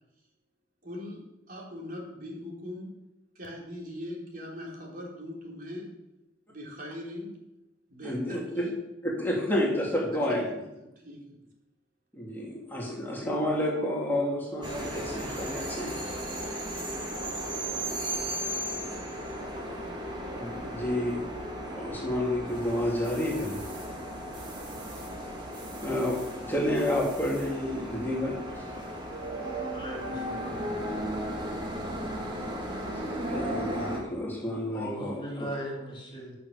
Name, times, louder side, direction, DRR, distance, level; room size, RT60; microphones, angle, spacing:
voice 1, 0.8-1.2 1.5-2.9 3.4-5.9 6.5-7.4 7.9-8.8 10.3-11.4, left 1 dB, 50° right, -2 dB, 3.7 m, -41 dB
voice 2, 8.0-8.6 9.2-10.4 12.1-15.9 20.2-21.2 21.7-23.6 25.8-28.7 33.2-35.5, left 1 dB, 10° left, -4 dB, 3.1 m, -30 dB
sound 1, 14.6-34.0, right 1 dB, 25° right, 2.8 m, -35 dB
voice 3, 29.7-30.8 34.7-36.3, equal, 25° left, -2 dB, 3.4 m, -38 dB
16.0 x 7.0 x 6.8 m, 0.94 s
head